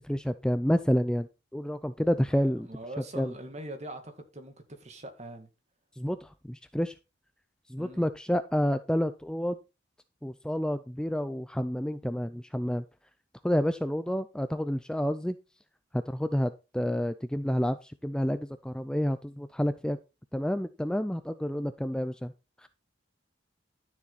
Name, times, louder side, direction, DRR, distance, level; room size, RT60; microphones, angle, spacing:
voice 1, 0.0-1.3 1.5-2.7 3.2-3.3 6.0-6.9 7.7-9.6 10.2-12.8 13.4-15.4 16.1-20.0 20.3-22.3 22.6-22.7, equal, 5° left, 0.4 m, -29 dB
voice 2, 2.3-5.5 7.8-8.1, right 1 dB, 35° right, 2.2 m, -43 dB
12.0 x 7.0 x 4.1 m
head